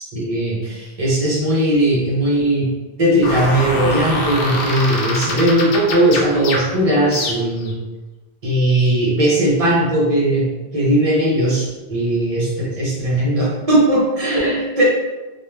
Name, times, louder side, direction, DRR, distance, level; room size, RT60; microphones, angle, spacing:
voice 1, 0.1-2.7 3.0-7.8 8.4-10.5 10.7-14.8, right 1 dB, 40° right, -4 dB, 0.6 m, -18 dB
sound 1, 3.2-7.7, left 1 dB, 65° left, 0.7 m, -25 dB
2.4 x 2.2 x 3.1 m, 1.2 s
omnidirectional pair, 1.1 m